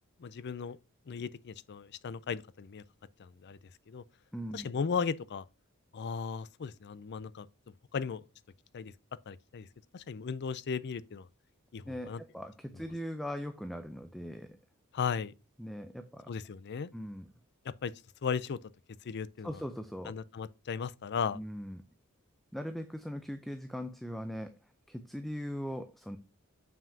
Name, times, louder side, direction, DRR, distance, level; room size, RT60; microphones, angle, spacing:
voice 1, 0.2-0.8 1.1-2.8 3.2-3.6 3.9-4.0 4.5-5.4 5.9-7.5 7.9-8.2 8.7-8.9 9.3-9.7 9.9-11.3 11.7-12.2 14.9-15.3 16.3-16.9 17.8-17.9 18.2-18.6 19.0-19.6 20.1-21.4, left 6 dB, 50° left, 0.4 m, -36 dB
voice 2, 4.3-4.7 11.9-14.6 15.6-16.3 16.9-17.3 19.4-20.2 21.3-21.8 22.5-24.6 24.9-26.2, equal, ahead, 0.5 m, -40 dB
7.1 x 5.8 x 2.7 m
head